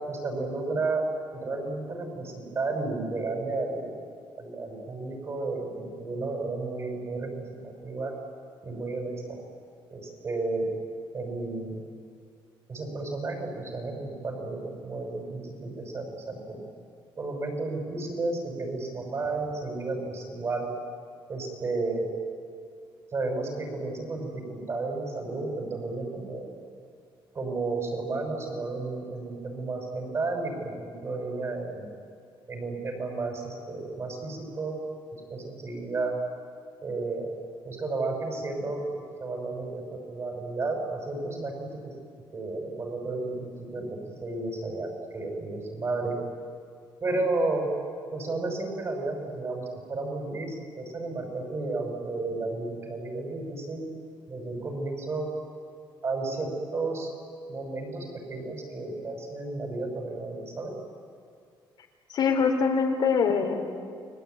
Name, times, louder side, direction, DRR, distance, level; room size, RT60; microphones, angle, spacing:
voice 1, 0.1-1.0 1.3-3.9 4.3-8.1 8.6-9.4 9.9-10.6 11.1-11.8 12.7-16.6 17.2-20.7 21.3-22.1 23.1-26.6 27.3-31.9 32.5-34.8 35.3-36.1 36.8-37.3 37.6-41.8 42.3-46.2 47.0-47.7 48.1-49.6 49.9-53.8 54.3-55.3 56.0-57.1 57.5-60.7, right 3 dB, 30° right, 2 dB, 6.2 m, -32 dB
voice 2, 62.1-63.7, left 5 dB, 55° left, 3 dB, 3.3 m, -24 dB
29.5 x 21.0 x 9.4 m, 2.2 s
cardioid pair, 155°, 9 cm